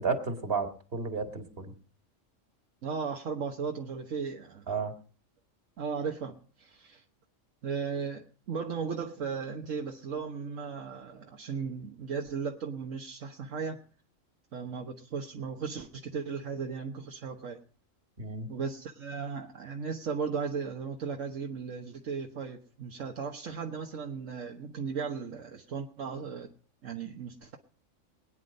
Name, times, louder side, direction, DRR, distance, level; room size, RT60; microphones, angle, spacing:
voice 1, 0.0-1.7 4.7-4.9 18.2-18.5, right 4 dB, 45° right, 7 dB, 2.1 m, -32 dB
voice 2, 2.8-4.7 5.8-7.0 7.6-13.8 14.5-17.6 18.5-26.5 26.8-27.6, right 5 dB, 75° right, 3 dB, 1.6 m, -36 dB
21.5 x 9.6 x 5.3 m, 0.41 s
omnidirectional pair, 1.3 m